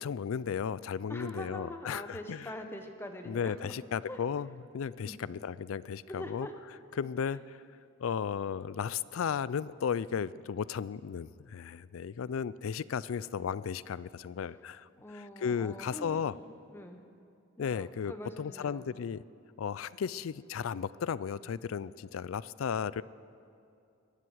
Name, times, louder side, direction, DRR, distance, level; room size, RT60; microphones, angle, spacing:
voice 1, 0.0-2.5 3.3-4.5 4.7-6.5 7.0-7.6 8.0-16.3 17.6-19.2 19.6-23.0, left 7 dB, 85° left, 19 dB, 0.4 m, -35 dB
voice 2, 1.1-3.7 4.1-4.2 5.0-5.2 6.1-6.5 7.0-7.1 15.0-17.0 17.6-18.8, left 1 dB, 10° left, 5 dB, 1.0 m, -44 dB
21.5 x 7.7 x 8.0 m, 2.6 s
head